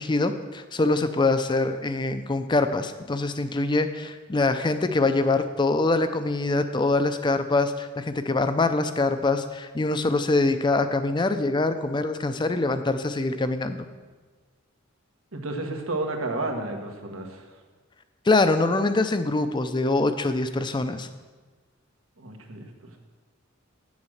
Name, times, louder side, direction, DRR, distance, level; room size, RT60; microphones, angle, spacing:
voice 1, 0.0-13.9 18.3-21.1, left 2 dB, 20° left, 10 dB, 0.5 m, -24 dB
voice 2, 15.3-17.5 22.2-23.0, right 2 dB, 90° right, 3 dB, 1.5 m, -32 dB
8.7 x 7.1 x 6.5 m, 1.3 s
head